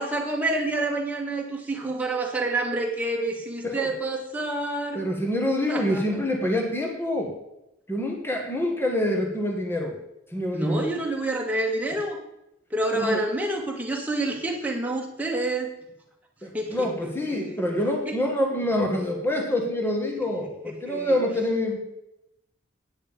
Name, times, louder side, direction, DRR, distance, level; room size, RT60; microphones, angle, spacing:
voice 1, 0.0-5.1 5.7-6.0 10.5-12.2 12.7-15.7 16.5-17.7 18.1-18.2 18.8-19.1 20.7-21.2, right 2 dB, 10° right, 0 dB, 1.7 m, -28 dB
voice 2, 4.9-7.3 7.9-10.0 10.3-10.9 12.9-13.2 16.4-21.8, left 1 dB, 10° left, 1 dB, 1.6 m, -26 dB
9.5 x 9.2 x 5.2 m, 0.86 s
head